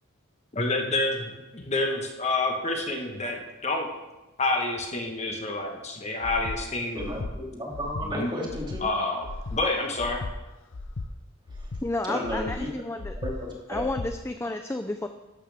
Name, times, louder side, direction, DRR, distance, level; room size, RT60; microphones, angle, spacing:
voice 1, 0.5-3.9 4.4-7.1 8.1-8.3 8.8-10.2, left 2 dB, 30° left, 2 dB, 1.3 m, -28 dB
Breathing, 6.2-6.6 7.0-7.3 7.7-8.1 8.5-8.8 9.2-9.6 10.0-10.3 10.7-11.1 11.5-11.8 12.2-12.6 13.0-13.3 13.7-14.1, left 3 dB, 70° left, 0.7 m, -35 dB
voice 2, 6.9-8.9 11.6-11.7 12.1-12.7 13.2-13.3 13.7-13.8, equal, 20° right, -2 dB, 2.6 m, -33 dB
voice 3, 11.8-13.2 13.7-15.1, left 2 dB, 10° left, 7 dB, 0.4 m, -31 dB
13.0 x 11.5 x 3.5 m, 1.1 s
head